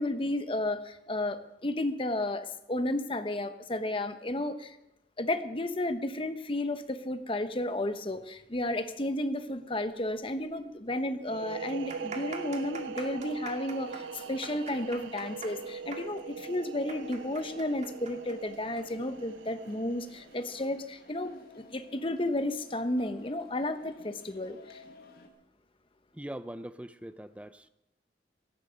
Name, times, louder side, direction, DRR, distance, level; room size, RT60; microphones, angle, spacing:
voice 1, 0.0-4.8 5.2-24.8, left 1 dB, 30° left, 10 dB, 1.0 m, -33 dB
sound 1, 10.5-10.6 10.8-10.9 11.6-18.8 19.1-19.2 20.0-20.2, right 4 dB, 40° right, 2.1 m, -44 dB
sound 2, 11.2-20.7, right 6 dB, 80° right, 0.5 m, -42 dB
sound 3, 13.8-25.3, left 2 dB, 50° left, 1.8 m, -55 dB
voice 2, 26.1-27.7, right 1 dB, 5° right, 13 dB, 0.5 m, -42 dB
17.5 x 15.0 x 5.2 m, 0.84 s
head